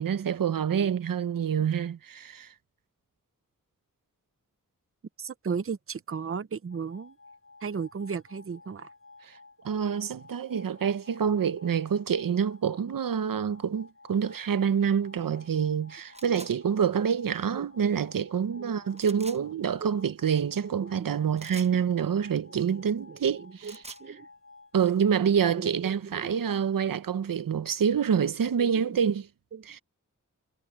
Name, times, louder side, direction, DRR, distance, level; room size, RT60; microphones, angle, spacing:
voice 1, 0.0-2.5 9.2-9.4 9.6-23.7 24.7-29.3 29.6-29.8, right 7 dB, 90° right, 0.7 m, -27 dB
voice 2, 5.2-7.1 7.6-8.9 17.6-18.0 18.6-18.7 19.8-20.1 20.6-21.2 23.0-24.3 25.5-26.4 28.6-29.0 29.5-29.7, right 6 dB, 45° right, 0.6 m, -36 dB
sound 1, 6.7-25.2, left 3 dB, 40° left, 6.1 m, -54 dB
sound 2, 16.1-16.5 18.9-19.4 21.4-21.7 23.4-24.0, right 2 dB, 20° right, 1.0 m, -45 dB
wide cardioid pair, 70°, 33 cm